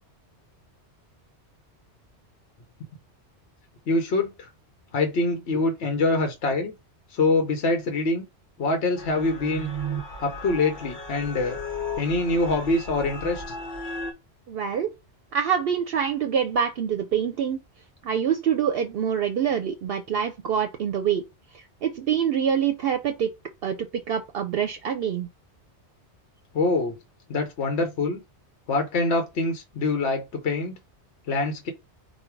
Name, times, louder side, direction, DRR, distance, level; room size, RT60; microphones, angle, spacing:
voice 1, 3.9-4.5 4.9-6.7 7.1-8.2 8.6-9.7 10.2-11.6 12.0-13.5 26.5-27.0 27.3-28.2 28.7-30.7 31.3-31.7, left 2 dB, 70° left, 1.0 m, -24 dB
Ambient Horror Loop, 9.0-14.1, equal, 45° left, 1.4 m, -35 dB
voice 2, 14.5-14.9 15.3-17.6 18.0-21.2 21.5-23.3 23.6-25.3, right 8 dB, 65° right, 0.7 m, -25 dB
5.2 x 2.2 x 4.5 m
omnidirectional pair, 1.2 m